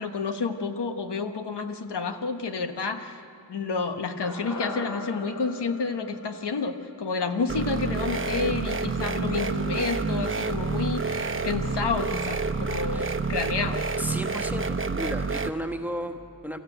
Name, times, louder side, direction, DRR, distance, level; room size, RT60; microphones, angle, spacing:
voice 1, 0.0-3.2 3.5-13.8, left 4 dB, 90° left, 6 dB, 1.4 m, -30 dB
sound 1, 4.2-8.5 8.8-8.9, left 2 dB, 45° left, 3.3 m, -40 dB
sound 2, 7.5-15.5, right 4 dB, 30° right, 0.9 m, -28 dB
voice 2, 14.0-16.6, equal, 5° right, 5 dB, 1.3 m, -34 dB
30.0 x 14.5 x 7.9 m, 2.5 s
wide cardioid pair, 105°, 40 cm